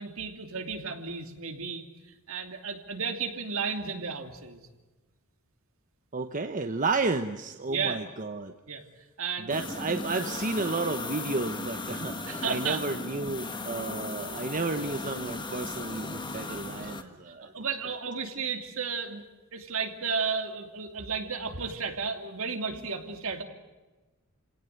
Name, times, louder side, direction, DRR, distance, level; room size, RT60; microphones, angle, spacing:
voice 1, 0.0-1.8 2.3-4.6 7.7-8.0 8.7-8.8 9.2-9.5 12.2-12.8 17.4-19.2 19.5-23.4, right 5 dB, 65° right, 5 dB, 2.8 m, -33 dB
voice 2, 6.1-8.5 9.4-17.5, right 3 dB, 35° right, 7 dB, 1.0 m, -32 dB
sound 1, 9.5-17.0, left 2 dB, 20° left, 1.7 m, -37 dB
28.0 x 17.5 x 9.3 m, 1.2 s
head